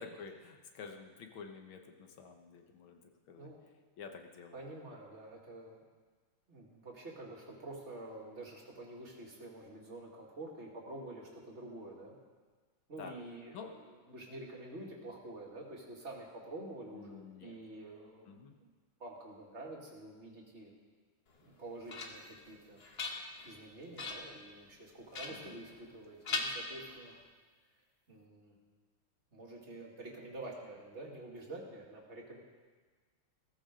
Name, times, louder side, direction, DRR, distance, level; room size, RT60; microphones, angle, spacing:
voice 1, 0.0-3.0 3.3-3.5 4.0-4.6 13.0-13.1 13.5-13.7 16.9-17.6 18.3-18.6 25.3-25.6, left 5 dB, 70° left, 5 dB, 2.0 m, -49 dB
voice 2, 4.5-5.8 6.5-12.1 12.9-18.3 18.6-18.7 19.0-20.7 21.4-22.8 23.4-27.1 28.1-28.5 29.3-32.4, right 2 dB, 30° right, -2 dB, 2.5 m, -48 dB
sound 1, 21.4-22.4 22.8-23.6 24.0-24.4 25.1-26.0 26.3-27.2, left 3 dB, 35° left, 1.1 m, -40 dB
17.0 x 14.5 x 3.8 m, 1.4 s
omnidirectional pair, 2.4 m